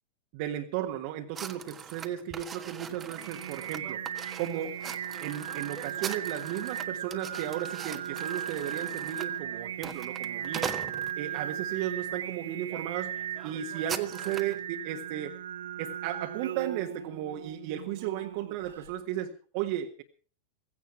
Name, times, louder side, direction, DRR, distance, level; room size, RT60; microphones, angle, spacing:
voice 1, 0.3-4.0 4.4-4.8 5.2-10.8 11.1-13.1 13.4-15.4 15.8-20.0, right 11 dB, 45° right, 3 dB, 1.6 m, -35 dB
sound 1, 1.3-11.5 12.1-12.3 12.7-12.8 13.1-14.6, right 7 dB, 20° right, 1.5 m, -41 dB
Singing, 2.7-18.9, right 10 dB, 65° right, 0.7 m, -37 dB
17.0 x 16.5 x 4.6 m, 0.39 s
figure-of-eight pair, 90°, 0 cm